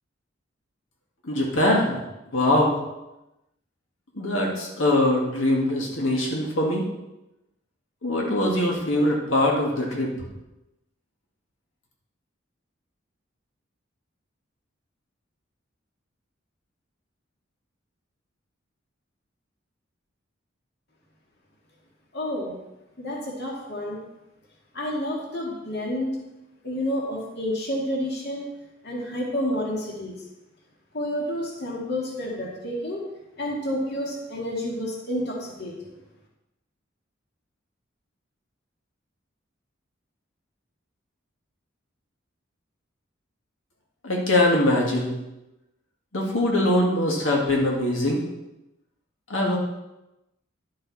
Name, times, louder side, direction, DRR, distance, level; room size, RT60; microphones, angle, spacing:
voice 1, 1.2-2.0 2.3-2.8 4.1-6.9 8.0-10.1 44.0-45.1 46.1-48.2 49.3-49.6, left 1 dB, 75° left, -2 dB, 2.0 m, -22 dB
voice 2, 22.1-22.6 23.0-24.0 24.7-26.1 26.6-28.5 28.8-30.2 30.9-33.0 33.4-35.9, left 1 dB, 55° left, -2 dB, 2.0 m, -29 dB
11.0 x 7.6 x 4.2 m, 0.95 s
head